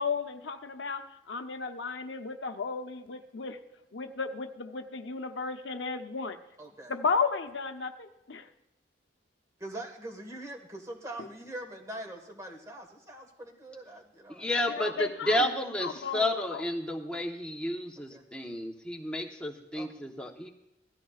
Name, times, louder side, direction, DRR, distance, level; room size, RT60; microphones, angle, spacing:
voice 1, 0.0-3.6 3.9-6.4 6.9-8.5 11.2-11.3 14.8-15.5 15.8-16.6, left 5 dB, 75° left, 6 dB, 0.7 m, -34 dB
voice 2, 6.6-7.0 9.6-14.5 18.1-18.2 19.7-19.9, right 1 dB, 15° right, 2 dB, 1.6 m, -43 dB
voice 3, 14.3-20.5, left 1 dB, 5° left, 1 dB, 1.0 m, -31 dB
16.5 x 13.5 x 2.4 m, 0.85 s
head